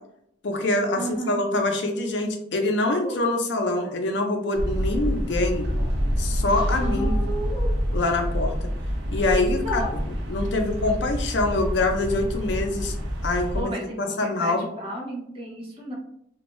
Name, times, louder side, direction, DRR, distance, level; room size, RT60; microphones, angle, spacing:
voice 1, 0.4-5.7 6.2-7.2 7.9-8.5 9.1-9.8 10.3-13.0 13.2-13.7 14.0-14.7, left 2 dB, 90° left, 4 dB, 0.5 m, -25 dB
voice 2, 1.0-1.4 6.8-7.4 9.5-9.9 13.5-15.9, right 1 dB, 30° right, -3 dB, 0.8 m, -33 dB
sound 1, 2.7-2.8 3.0-3.2 3.6-3.9 6.6-7.7, right 1 dB, ahead, 1.2 m, -34 dB
sound 2, 4.6-13.6, equal, 70° right, 0.6 m, -27 dB
2.6 x 2.2 x 3.0 m, 0.73 s
head